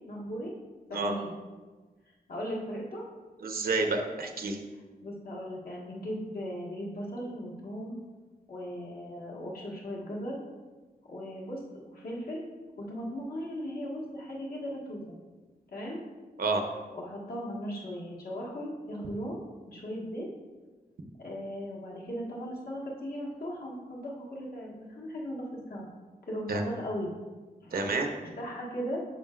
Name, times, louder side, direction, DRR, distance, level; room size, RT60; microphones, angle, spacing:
voice 1, 0.1-0.5 0.9-1.3 2.3-3.1 5.0-8.0 8.5-10.4 11.1-12.4 12.8-15.1 15.7-16.0 16.9-19.4 19.7-20.3 21.2-25.9 26.3-27.1 27.6-27.8 28.2-29.0, equal, 70° left, -4 dB, 1.6 m, -37 dB
voice 2, 3.4-4.6 16.4-16.6 26.5-26.6 27.7-28.1, right 3 dB, 70° right, 4 dB, 0.8 m, -29 dB
11.0 x 5.0 x 2.5 m, 1.3 s
wide cardioid pair, 160°, 16 cm